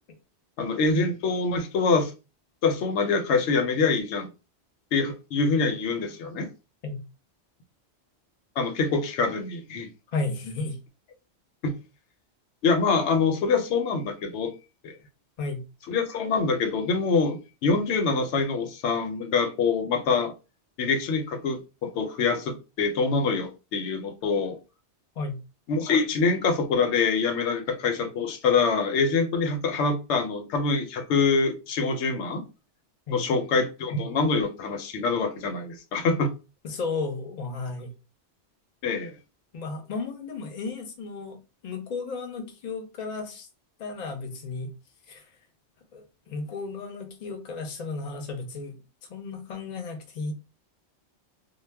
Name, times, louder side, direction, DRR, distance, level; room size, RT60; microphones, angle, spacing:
voice 1, 0.6-2.1 2.6-4.3 4.9-6.5 8.6-9.9 11.6-11.7 12.6-14.5 14.8-14.9 15.9-20.3 20.8-24.6 25.7-32.4 33.1-36.3 38.8-39.1, left 4 dB, 85° left, 0.9 m, -25 dB
voice 2, 10.1-10.8 15.4-15.7 25.2-25.4 33.1-33.3 36.6-37.9 39.5-43.5 43.8-44.7 45.1-45.3 45.9-48.8 49.1-50.3, left 3 dB, 45° left, 0.6 m, -34 dB
2.2 x 2.0 x 3.2 m
omnidirectional pair, 1.1 m